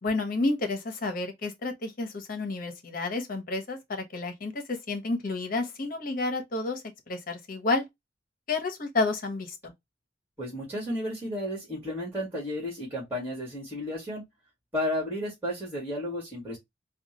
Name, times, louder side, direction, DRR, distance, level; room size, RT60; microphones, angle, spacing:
voice 1, 0.0-6.8 7.1-7.8 8.5-9.7, left 3 dB, 50° left, 1.0 m, -30 dB
voice 2, 10.4-14.2 14.7-16.6, left 1 dB, 10° right, 2.1 m, -33 dB
4.3 x 2.4 x 2.8 m
head